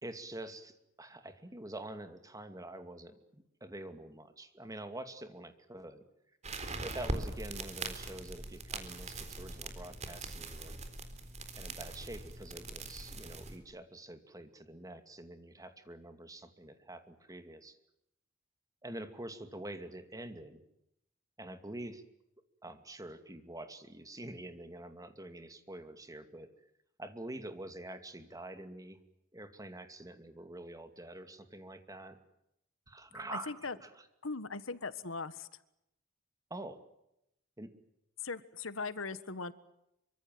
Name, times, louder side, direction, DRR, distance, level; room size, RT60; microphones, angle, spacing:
voice 1, 0.0-6.0 6.8-10.8 11.6-17.8 18.8-20.6 21.4-22.0 22.6-26.5 27.0-29.0 29.3-32.2 32.9-33.9 36.5-36.8 37.6-37.7, right 1 dB, 20° right, 9 dB, 2.5 m, -46 dB
sound 1, 6.4-13.6, right 2 dB, 35° right, 3.9 m, -41 dB
voice 2, 33.3-33.7 34.2-35.5 38.2-39.5, left 4 dB, 80° left, 14 dB, 1.5 m, -39 dB
26.0 x 24.5 x 7.7 m, 0.82 s
head